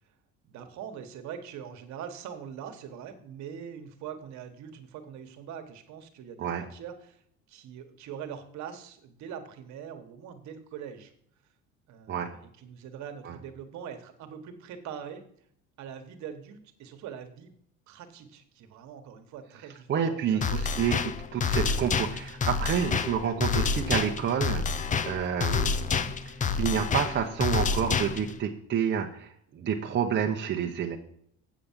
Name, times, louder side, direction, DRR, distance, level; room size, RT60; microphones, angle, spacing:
voice 1, 0.4-7.2 7.5-11.1 11.9-15.2 15.8-17.5 17.9-20.7 24.8-25.0, right 8 dB, 60° right, 7 dB, 1.4 m, -43 dB
voice 2, 19.9-25.7 26.6-31.0, right 8 dB, 35° right, 2 dB, 0.9 m, -29 dB
sound 1, 20.4-28.4, left 5 dB, 25° left, 0.5 m, -28 dB
8.2 x 5.1 x 7.3 m, 0.66 s
cardioid pair, 130°, 31 cm